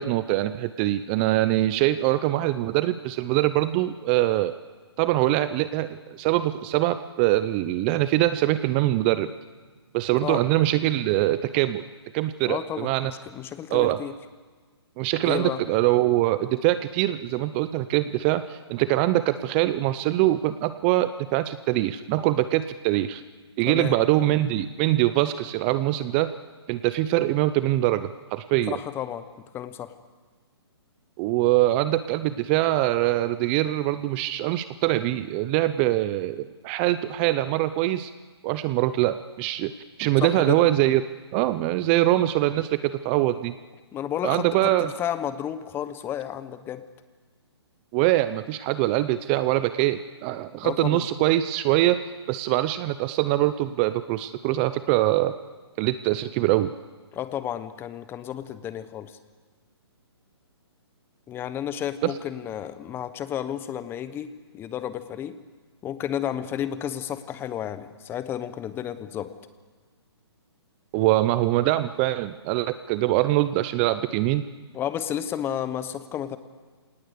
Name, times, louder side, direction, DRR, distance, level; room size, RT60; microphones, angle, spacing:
voice 1, 0.0-4.6 5.0-9.3 9.9-11.8 12.1-13.1 13.7-14.0 15.0-23.2 23.6-26.3 26.7-28.8 31.2-38.1 38.4-39.7 40.0-41.0 41.3-43.5 44.2-44.9 47.9-52.0 52.3-55.4 55.8-56.7 62.0-62.1 70.9-74.4, right 15 dB, 25° right, 13 dB, 0.6 m, -23 dB
voice 2, 12.5-14.1 15.2-15.6 23.7-24.0 28.7-29.9 40.2-40.6 43.9-46.8 50.6-51.1 57.1-59.2 61.3-65.4 65.8-69.3 74.7-76.4, left 10 dB, 15° left, 13 dB, 1.0 m, -32 dB
26.0 x 18.5 x 8.3 m, 1.4 s
hypercardioid pair, 140°, 14 cm